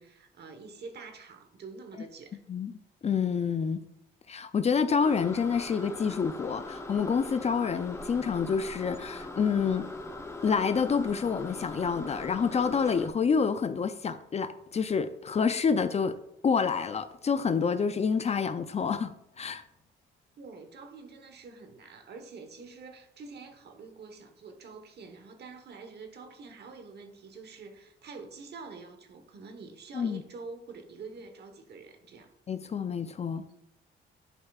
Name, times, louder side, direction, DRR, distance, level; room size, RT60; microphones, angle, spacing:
voice 1, 0.0-2.4 20.4-32.3, right 4 dB, 55° right, 1.2 m, -46 dB
voice 2, 2.5-3.8 4.3-9.9 10.4-16.2 16.4-19.6 29.9-30.2 32.5-33.6, left 6 dB, 35° left, 0.4 m, -28 dB
sound 1, 5.0-13.1, left 2 dB, 15° left, 0.9 m, -41 dB
11.0 x 5.6 x 2.4 m
cardioid pair, 90°, 20 cm